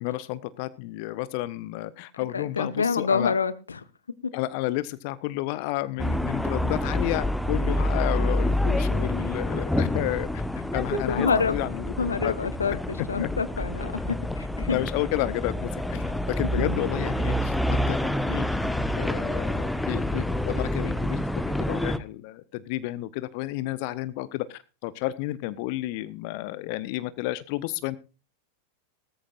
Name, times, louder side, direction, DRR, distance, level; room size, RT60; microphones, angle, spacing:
voice 1, 0.0-3.4 4.3-10.4 10.7-11.8 12.2-12.3 13.2-13.3 14.7-17.5 17.9-18.5 19.0-28.0, left 17 dB, 45° left, 16 dB, 0.7 m, -31 dB
voice 2, 2.2-3.8 4.2-4.3 10.9-11.6 12.0-14.8 15.3-15.4 16.6-16.9, left 5 dB, 75° left, 16 dB, 0.9 m, -27 dB
sound 1, 6.0-22.0, left 1 dB, 5° left, 1.0 m, -27 dB
18.0 x 14.0 x 2.5 m, 0.32 s
figure-of-eight pair, 90°, 0 cm